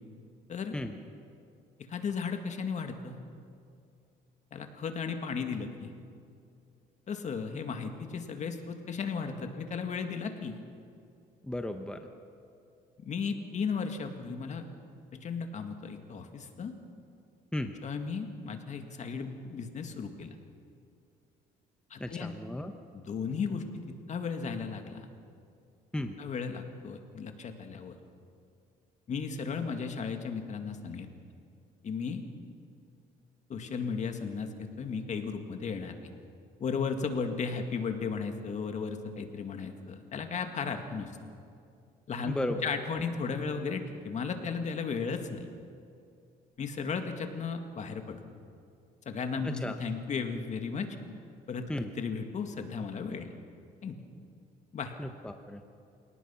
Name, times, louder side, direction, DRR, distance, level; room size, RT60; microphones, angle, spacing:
voice 1, 1.9-3.2 4.5-5.9 7.1-10.6 13.0-14.6 15.1-16.7 17.8-20.3 21.9-22.3 22.9-25.1 26.2-27.9 29.1-31.1 31.8-32.2 33.5-36.0 36.6-41.1 42.1-42.4 42.6-45.5 46.6-48.2 49.1-51.0 51.5-53.3 53.8-54.0 54.7-55.0, left 5 dB, 45° left, 6 dB, 2.1 m, -35 dB
voice 2, 11.4-12.1 17.5-17.7 22.0-22.7 25.9-26.1 42.3-42.6 43.0-43.1 49.4-49.7 51.7-51.9 55.0-55.6, left 1 dB, 5° left, 6 dB, 1.0 m, -35 dB
27.5 x 18.5 x 5.8 m, 2.4 s
cardioid pair, 110°, 17 cm